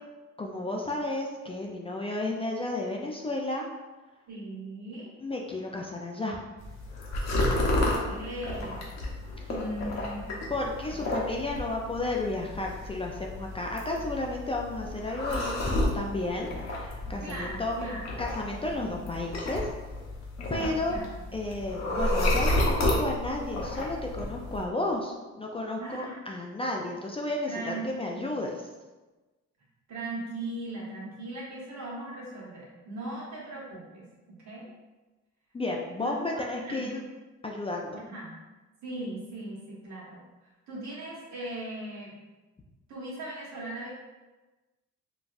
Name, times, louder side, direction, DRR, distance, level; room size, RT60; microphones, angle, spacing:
voice 1, 0.4-3.7 5.2-6.4 10.5-16.5 16.8-17.8 18.2-19.7 20.5-21.0 21.3-28.5 35.5-37.0 37.4-38.0, left 2 dB, 20° left, 0 dB, 0.3 m, -32 dB
voice 2, 4.3-5.1 7.7-8.9 9.5-10.2 10.9-11.2 17.2-18.1 18.9-19.2 20.5-21.1 25.8-26.2 27.5-28.2 29.9-34.7 36.0-37.0 37.9-38.3 38.8-40.2 40.7-42.2 42.9-43.9, right 1 dB, 65° right, -4 dB, 1.2 m, -39 dB
sound 1, 6.6-24.7, left 1 dB, 60° left, 0.8 m, -31 dB
3.9 x 2.2 x 2.4 m, 1.2 s
cardioid pair, 90°, 30 cm